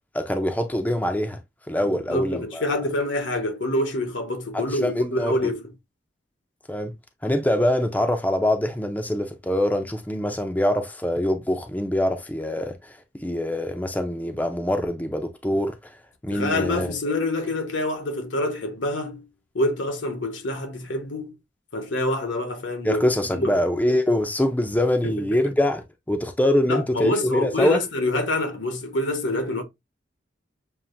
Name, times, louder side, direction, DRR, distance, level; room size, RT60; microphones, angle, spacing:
voice 1, 0.1-1.4 1.7-2.7 4.5-5.4 6.7-6.9 7.2-16.0 16.2-16.9 22.8-27.8, left 1 dB, 10° left, 0.5 m, -24 dB
voice 2, 1.9-5.6 16.3-19.3 19.5-21.4 21.7-23.0 23.3-23.6 25.0-25.1 26.7-29.6, left 1 dB, 75° left, 1.1 m, -26 dB
6.9 x 2.5 x 2.5 m
head